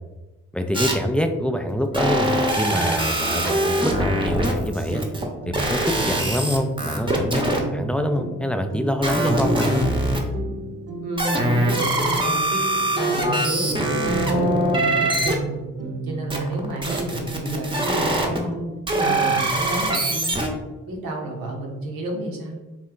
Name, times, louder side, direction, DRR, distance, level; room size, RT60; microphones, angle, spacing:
voice 1, 0.5-5.0 5.5-9.9, left 1 dB, 5° left, 5 dB, 0.3 m, -25 dB
sound 1, 0.7-0.9 1.9-5.2 5.5-7.6 9.0-10.2 11.2-15.3 16.3-18.4 18.9-20.5, right 1 dB, 15° right, 0.8 m, -23 dB
sound 2, 1.9-5.5, left 3 dB, 35° left, 0.7 m, -37 dB
sound 3, 2.7-20.1, right 3 dB, 45° right, 0.8 m, -34 dB
voice 2, 11.0-12.4 12.9-15.6 16.0-18.6 18.9-20.4 20.9-22.6, right 1 dB, 80° right, 0 dB, 0.9 m, -30 dB
3.1 x 2.2 x 3.9 m, 1.1 s
supercardioid pair, 45°, 34 cm